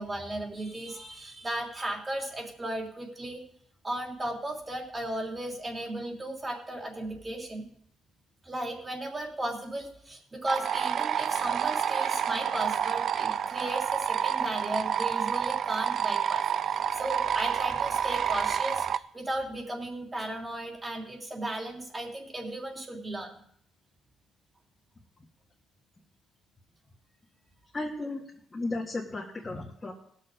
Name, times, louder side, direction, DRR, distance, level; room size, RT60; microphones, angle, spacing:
voice 1, 0.0-3.4 3.8-7.7 8.4-23.3, right 1 dB, 25° right, 1 dB, 3.1 m, -35 dB
sound 1, 10.5-19.0, right 8 dB, 60° right, 0.4 m, -29 dB
voice 2, 27.7-28.2 28.5-29.9, left 2 dB, 20° left, -4 dB, 1.9 m, -34 dB
18.5 x 6.6 x 5.0 m, 0.67 s
cardioid pair, 90°, 0 cm